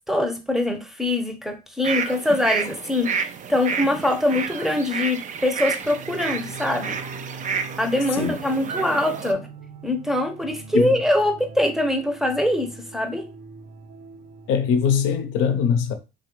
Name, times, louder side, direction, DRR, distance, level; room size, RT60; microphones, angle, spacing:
voice 1, 0.1-7.0 7.8-9.5 9.8-13.2, left 1 dB, ahead, 0.7 m, -23 dB
sound 1, 1.8-9.3, right 6 dB, 35° right, 0.4 m, -30 dB
sound 2, 5.8-15.0, right 4 dB, 60° right, 0.8 m, -42 dB
voice 2, 14.5-15.9, left 7 dB, 70° left, 0.6 m, -21 dB
3.1 x 2.4 x 3.0 m
supercardioid pair, 70°, 21 cm